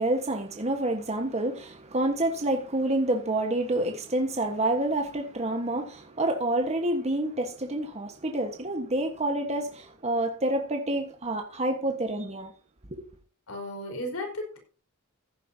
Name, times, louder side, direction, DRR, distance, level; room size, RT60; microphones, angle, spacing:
voice 1, 0.0-12.5 12.9-13.1, right 1 dB, 30° right, 1.4 m, -28 dB
voice 2, 13.5-14.6, left 1 dB, 75° left, 4.5 m, -34 dB
15.0 x 11.0 x 2.8 m
head